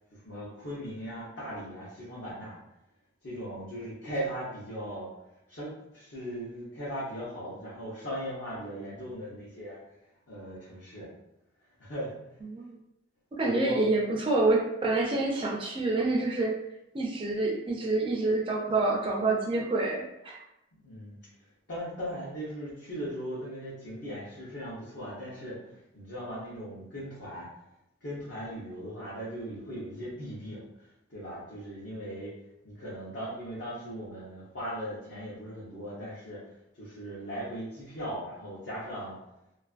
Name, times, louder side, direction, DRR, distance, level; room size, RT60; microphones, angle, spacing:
voice 1, 0.1-2.6 3.2-5.1 5.5-9.8 10.3-11.1 11.8-12.1 13.4-13.8 20.7-21.4 21.7-27.5 28.0-32.4 32.6-39.2, equal, 65° left, -9 dB, 0.8 m, -38 dB
voice 2, 13.3-16.5 16.9-20.4, right 2 dB, 25° right, -2 dB, 0.4 m, -27 dB
2.4 x 2.4 x 2.3 m, 0.85 s
head